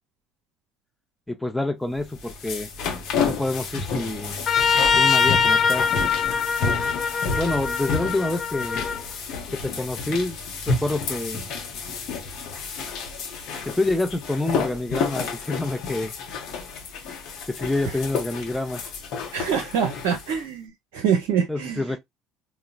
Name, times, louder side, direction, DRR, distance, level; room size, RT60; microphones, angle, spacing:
voice 1, 1.3-2.7 3.2-4.4 4.9-5.9 7.3-8.9 9.5-10.4 10.7-11.4 13.7-16.1 17.5-18.8 21.5-22.0, left 2 dB, 5° left, 0.6 m, -27 dB
sound 1, 2.0-20.4, left 5 dB, 60° left, 0.8 m, -31 dB
Trumpet, 4.5-9.0, left 6 dB, 40° left, 0.3 m, -22 dB
voice 2, 19.3-21.9, right 7 dB, 65° right, 0.6 m, -25 dB
3.8 x 2.1 x 2.3 m
figure-of-eight pair, 60°, 0 cm